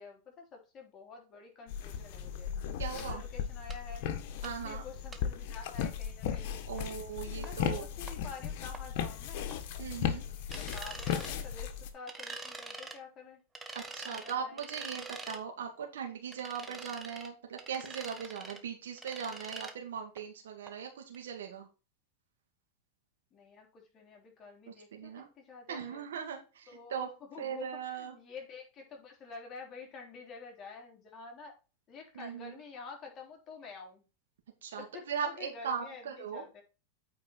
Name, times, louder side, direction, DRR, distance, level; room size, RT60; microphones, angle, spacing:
voice 1, 0.0-2.5 3.0-4.0 4.3-6.9 7.4-9.5 10.5-13.4 14.0-14.6 16.6-16.8 23.3-26.0 26.7-27.7 27.9-31.6 31.9-34.0 34.8-36.6, left 4 dB, 30° left, 1 dB, 3.5 m, -49 dB
sound 1, 1.7-11.9, left 8 dB, 60° left, 1.6 m, -36 dB
voice 2, 2.8-3.2 4.4-4.8 6.7-7.9 9.8-10.2 13.7-21.7 24.7-25.3 25.7-27.1 27.4-28.1 32.1-32.5 34.6-36.4, right 7 dB, 90° right, 2 dB, 2.2 m, -39 dB
sound 2, 3.0-3.1 3.7-3.8 4.4-4.5 5.1-5.2 6.8-6.9 7.4-7.5 8.1-8.2 8.7-8.8 9.5-9.6 10.5-11.3 12.1-13.0 13.5-15.4 16.3-17.3 17.6-18.6 19.0-19.7 20.2-20.3 20.7-20.8 21.1-21.2, right 3 dB, 10° right, 1.2 m, -45 dB
8.9 x 4.7 x 4.5 m, 0.31 s
supercardioid pair, 135°, 0 cm